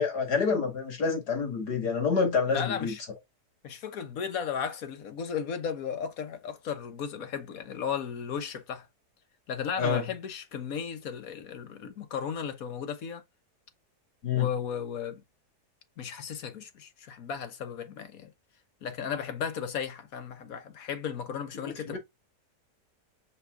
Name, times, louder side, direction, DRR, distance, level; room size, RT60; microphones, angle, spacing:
voice 1, 0.0-2.9 9.8-10.0 14.2-14.5 21.9-22.0, left 5 dB, 80° left, 2.6 m, -27 dB
voice 2, 2.5-3.0 3.6-8.9 9.5-13.2 14.3-15.2 16.0-18.3 18.8-22.0, left 7 dB, 60° left, 1.5 m, -35 dB
5.8 x 4.6 x 3.7 m
omnidirectional pair, 1.7 m